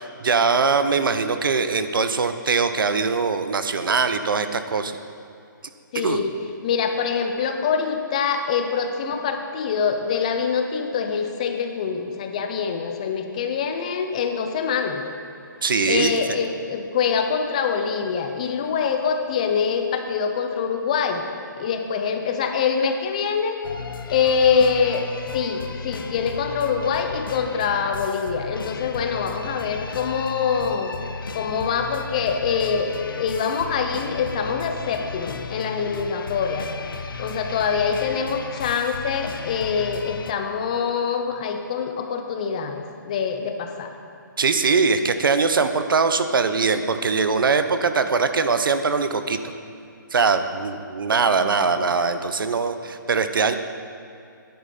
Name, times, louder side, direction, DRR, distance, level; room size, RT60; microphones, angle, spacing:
voice 1, 0.0-4.9 5.9-6.2 15.6-16.2 44.4-49.4 50.1-53.5, right 4 dB, 80° right, 9 dB, 0.7 m, -21 dB
voice 2, 5.9-6.3 6.6-15.0 15.9-21.2 21.6-23.6 24.1-25.1 25.3-30.9 31.3-36.7 37.2-43.9 51.3-51.7, left 6 dB, 20° left, 5 dB, 0.4 m, -24 dB
sound 1, 23.6-40.3, left 4 dB, 85° left, 0.7 m, -35 dB
10.5 x 8.8 x 4.2 m, 2.6 s
hypercardioid pair, 170°, 11 cm